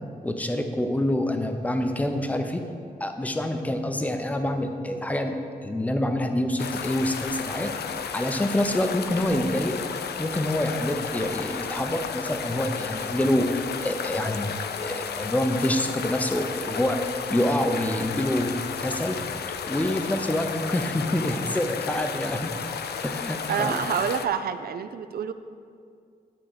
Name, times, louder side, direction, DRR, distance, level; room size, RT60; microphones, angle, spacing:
voice 1, 0.2-2.6 3.0-5.3 5.6-7.7 8.1-9.8 10.2-17.0 17.3-19.2 19.7-22.5 23.0-23.7, left 1 dB, 10° left, 6 dB, 0.6 m, -26 dB
sound 1, 6.6-24.3, left 7 dB, 85° left, 0.5 m, -33 dB
voice 2, 23.5-25.3, right 7 dB, 70° right, 11 dB, 0.4 m, -27 dB
10.5 x 4.2 x 6.5 m, 2.3 s
wide cardioid pair, 150°, 16 cm